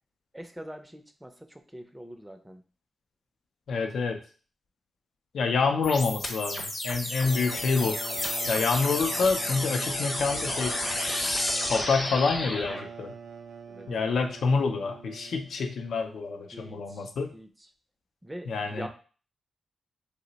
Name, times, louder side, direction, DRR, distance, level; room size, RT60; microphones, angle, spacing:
voice 1, 0.3-2.6 13.7-13.9 16.5-17.5 18.2-18.9, equal, 10° right, 6 dB, 0.5 m, -43 dB
voice 2, 3.7-4.2 5.3-8.0 8.5-10.8 11.7-13.1 13.9-17.3 18.5-18.9, left 4 dB, 80° left, 5 dB, 0.4 m, -27 dB
sound 1, 5.8-12.8, left 1 dB, 50° left, 0.9 m, -31 dB
sound 2, 7.2-15.7, right 6 dB, 80° right, 0.3 m, -42 dB
2.8 x 2.0 x 3.9 m, 0.39 s
cardioid pair, 60°, 0 cm